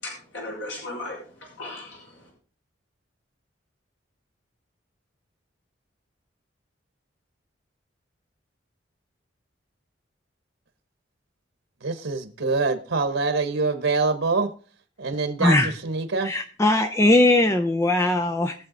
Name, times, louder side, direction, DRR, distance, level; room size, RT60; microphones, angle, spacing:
voice 1, 0.0-2.3, left 2 dB, 85° left, 6.1 m, -37 dB
voice 2, 11.8-14.5 15.0-15.6 15.8-16.3, right 3 dB, 90° right, 1.1 m, -24 dB
voice 3, 15.4-15.7 16.2-18.7, left 2 dB, 15° left, 0.6 m, -20 dB
20.0 x 7.2 x 3.9 m
head